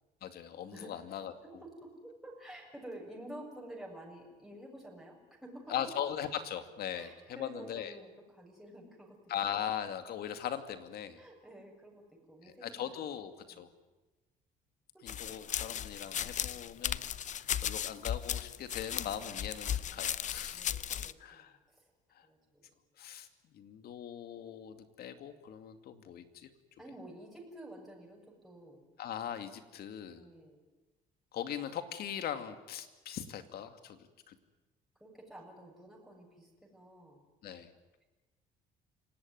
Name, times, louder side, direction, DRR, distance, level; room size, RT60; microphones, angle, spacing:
voice 1, 0.2-1.3 5.7-7.1 7.4-7.9 9.3-11.2 12.6-13.7 15.0-20.6 21.2-21.6 22.1-22.3 23.0-23.3 23.5-26.5 29.0-30.2 31.3-34.4 37.4-37.7, left 9 dB, 65° left, 9 dB, 2.4 m, -40 dB
voice 2, 1.4-6.0 6.9-9.2 11.1-12.9 13.5-13.7 14.9-15.5 17.4-17.7 19.8-20.0 20.5-21.9 22.2-22.7 26.1-26.2 26.8-28.8 30.2-30.6 35.0-37.2, right 1 dB, ahead, -2 dB, 7.1 m, -50 dB
sound 1, 15.1-21.1, left 9 dB, 45° left, 0.8 m, -36 dB
27.5 x 18.0 x 9.6 m, 1.1 s
cardioid pair, 110°, 17 cm